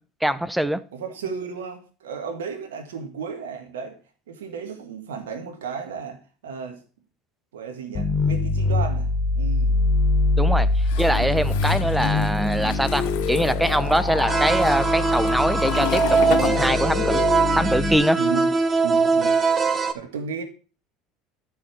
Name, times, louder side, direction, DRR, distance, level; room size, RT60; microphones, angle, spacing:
voice 1, 0.2-0.8 10.4-16.0 16.3-17.2 17.5-18.2, right 1 dB, 5° right, 1.1 m, -23 dB
voice 2, 0.9-4.0 4.3-6.2 6.4-6.8 7.5-9.1 9.3-9.8 18.1-18.5 18.8-19.4 19.9-20.4, right 6 dB, 80° right, 1.8 m, -33 dB
sound 1, 7.9-17.9, left 3 dB, 50° left, 2.6 m, -23 dB
Toilet flush, 10.8-17.3 17.5-19.1, left 15 dB, 70° left, 1.2 m, -34 dB
sound 2, 14.3-19.9, right 4 dB, 30° right, 2.0 m, -22 dB
13.0 x 5.7 x 6.3 m
hypercardioid pair, 75°, 0 cm